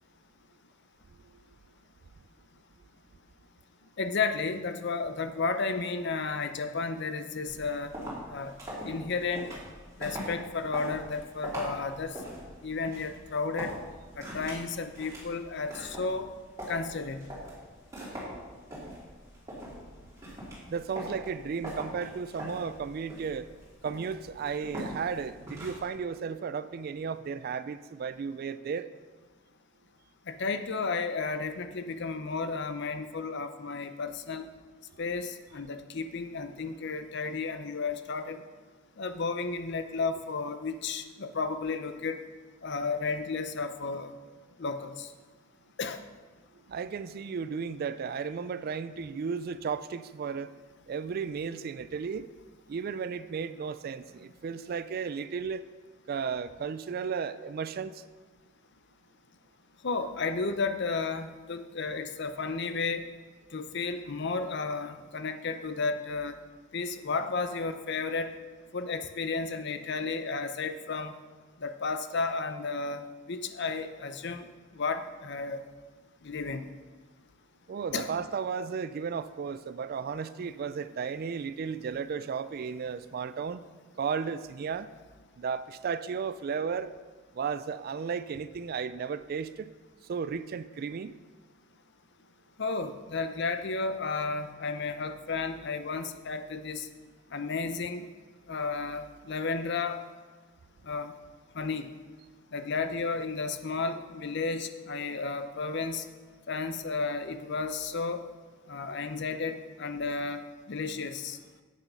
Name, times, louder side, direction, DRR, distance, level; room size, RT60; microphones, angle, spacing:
voice 1, 4.0-7.9 8.3-8.5 8.8-9.5 10.0-12.2 12.6-13.8 14.2-16.3 16.7-17.3 30.3-34.5 35.0-38.4 39.0-42.2 42.6-44.1 44.6-45.1 45.8-46.0 59.8-63.0 63.5-66.4 66.7-68.3 68.7-71.1 71.6-73.0 73.3-74.5 74.7-75.6 76.2-76.7 77.9-78.2 92.6-96.9 97.3-98.1 98.5-100.0 100.8-101.1 101.5-101.9 102.5-106.0 106.5-108.2 108.7-110.4 110.7-111.4, left 4 dB, 55° left, 9 dB, 0.6 m, -33 dB
sound 1, 7.5-25.9, equal, 15° right, 3.2 m, -42 dB
voice 2, 20.7-23.5 23.8-28.9 46.7-50.5 50.9-52.3 52.7-55.6 56.1-58.0 77.7-83.6 84.0-84.9 85.4-86.9 87.3-89.7 90.1-91.2, right 6 dB, 45° right, 14 dB, 0.3 m, -34 dB
8.4 x 7.0 x 5.5 m, 1.4 s
head